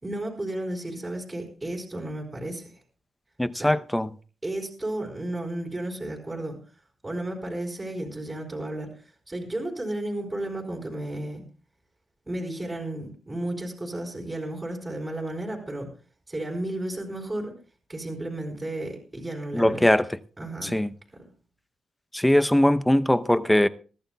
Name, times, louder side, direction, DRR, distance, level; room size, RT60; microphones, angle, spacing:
voice 1, 0.0-2.7 3.6-3.7 4.4-6.6 7.0-11.4 12.3-15.9 16.3-17.5 17.9-19.9 20.4-20.8 21.1-21.2, right 1 dB, 20° right, 4.1 m, -33 dB
voice 2, 3.4-4.1 19.5-20.1 20.6-20.9 22.1-23.7, left 1 dB, 10° left, 0.7 m, -21 dB
22.0 x 14.0 x 2.3 m
cardioid pair, 70°, 0 cm